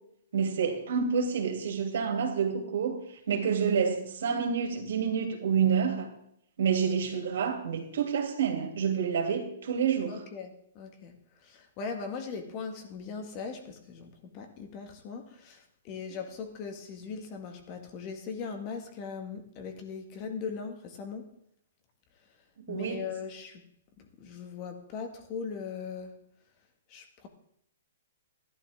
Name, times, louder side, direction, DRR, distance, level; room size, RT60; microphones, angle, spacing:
voice 1, 0.3-3.0 3.3-6.1 6.6-10.2 22.7-23.1, right 6 dB, 70° right, 3 dB, 3.1 m, -28 dB
voice 2, 10.1-21.3 22.7-23.6 24.0-26.2 26.9-27.3, left 5 dB, 30° left, 5 dB, 2.0 m, -39 dB
14.0 x 11.5 x 3.7 m, 0.72 s
hypercardioid pair, 155°, 0 cm